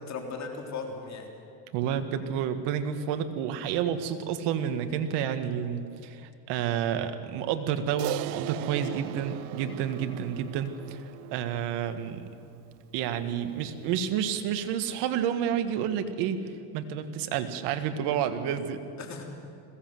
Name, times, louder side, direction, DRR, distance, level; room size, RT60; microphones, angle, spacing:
voice 1, 0.1-1.3 19.0-19.2, left 4 dB, 40° left, 2 dB, 3.6 m, -37 dB
voice 2, 1.7-11.0 11.3-12.3 12.9-16.4 16.7-18.8, right 9 dB, 70° right, 9 dB, 1.8 m, -30 dB
Crash cymbal, 8.0-12.6, right 19 dB, 90° right, 0.5 m, -39 dB
21.0 x 16.5 x 7.9 m, 2.5 s
supercardioid pair, 105°, 43 cm